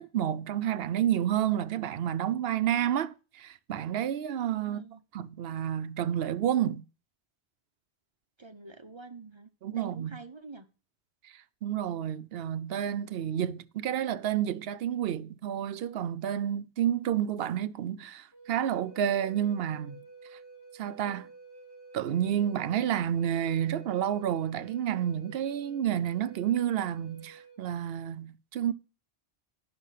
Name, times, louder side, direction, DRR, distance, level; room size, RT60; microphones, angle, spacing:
voice 1, 0.0-4.8 5.1-6.8 9.6-10.2 11.2-20.0 20.7-21.3 21.9-28.7, right 10 dB, 65° right, 0.8 m, -30 dB
voice 2, 4.6-5.0 8.4-9.5 9.7-10.7, right 4 dB, 30° right, 0.7 m, -46 dB
Wind instrument woodwind instrument, 18.3-27.6, right 4 dB, 60° left, 2.2 m, -51 dB
9.9 x 6.1 x 5.6 m
omnidirectional pair, 1.2 m